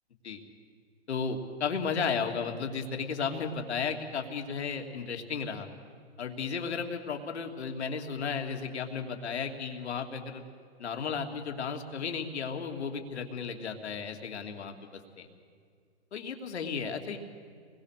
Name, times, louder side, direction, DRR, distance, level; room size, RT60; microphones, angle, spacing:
voice 1, 1.1-5.7 6.2-10.4 10.8-15.3 16.1-17.2, left 5 dB, 75° left, 4 dB, 2.9 m, -34 dB
29.0 x 21.0 x 6.7 m, 2.1 s
hypercardioid pair, 155°, 34 cm